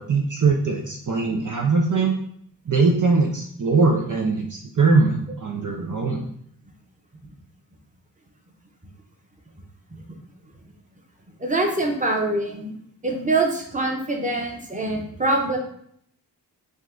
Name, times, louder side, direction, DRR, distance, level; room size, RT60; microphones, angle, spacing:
voice 1, 0.0-2.1 2.7-6.3, right 4 dB, 45° right, 0 dB, 0.7 m, -21 dB
voice 2, 11.4-12.7 13.0-15.6, right 2 dB, 20° right, 2 dB, 1.0 m, -24 dB
5.2 x 2.4 x 3.8 m, 0.68 s
cardioid pair, 65°, 42 cm